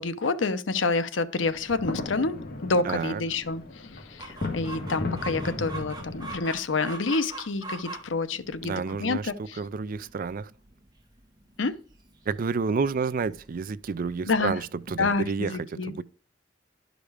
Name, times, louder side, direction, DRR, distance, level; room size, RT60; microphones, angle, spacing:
voice 1, 0.0-2.4 2.6-3.6 4.1-9.6 11.6-11.8 14.3-14.5 15.0-15.9, left 3 dB, 85° left, 0.8 m, -28 dB
sound 1, 1.4-6.4, left 2 dB, 55° left, 1.9 m, -36 dB
voice 2, 2.8-3.2 8.6-10.5 12.3-16.0, right 5 dB, 50° right, 0.4 m, -30 dB
Chicken rooster, 4.2-15.3, right 3 dB, 20° right, 1.7 m, -44 dB
11.5 x 5.1 x 4.8 m
head